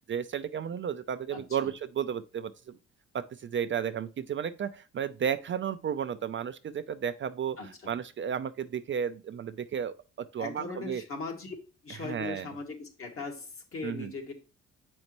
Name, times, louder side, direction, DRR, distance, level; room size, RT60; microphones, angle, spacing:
voice 1, 0.1-2.8 3.1-7.6 7.9-11.0 12.0-12.5 13.8-14.1, right 8 dB, 40° right, 0.5 m, -33 dB
voice 2, 1.3-1.7 7.6-7.9 10.4-11.6 11.8-14.3, left 4 dB, 45° left, 2.0 m, -39 dB
7.7 x 5.4 x 3.0 m
cardioid pair, 90°, 30 cm